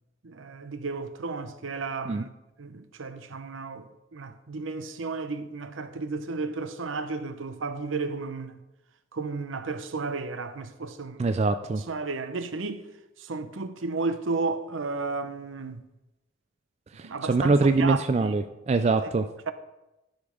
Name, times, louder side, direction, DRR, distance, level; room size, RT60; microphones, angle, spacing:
voice 1, 0.2-2.3 2.6-8.6 9.1-11.3 11.9-12.8 13.2-15.8 17.0-18.3 19.5-19.6, right 3 dB, 80° right, 0.7 m, -33 dB
voice 2, 11.2-11.8 17.0-19.3, right 3 dB, 30° right, 0.3 m, -24 dB
12.0 x 5.1 x 5.1 m
head